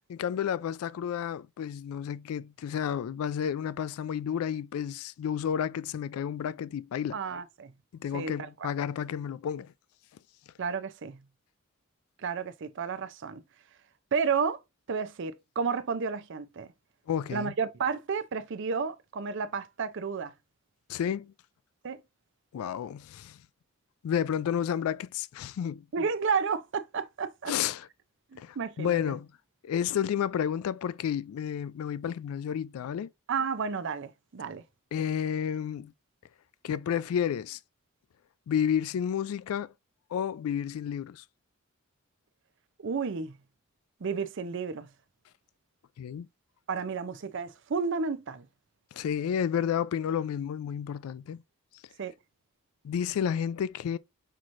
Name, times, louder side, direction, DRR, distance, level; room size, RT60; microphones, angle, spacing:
voice 1, 0.1-7.2 8.0-9.7 17.1-17.5 20.9-21.3 22.5-23.4 24.0-25.8 27.5-27.9 28.4-29.3 29.6-33.1 34.9-35.9 36.6-37.6 38.5-39.7 40.1-41.2 46.0-46.3 48.9-51.4 52.8-54.0, left 8 dB, 80° left, 0.3 m, -31 dB
voice 2, 7.1-7.7 8.1-8.7 10.6-11.2 12.2-13.4 14.1-14.6 14.9-16.7 17.3-20.3 21.8-22.0 25.9-27.5 28.3-29.2 33.3-34.6 42.8-43.4 44.0-44.9 46.7-48.5 52.0-52.1, right 5 dB, 60° right, 0.5 m, -32 dB
5.7 x 3.1 x 2.5 m
head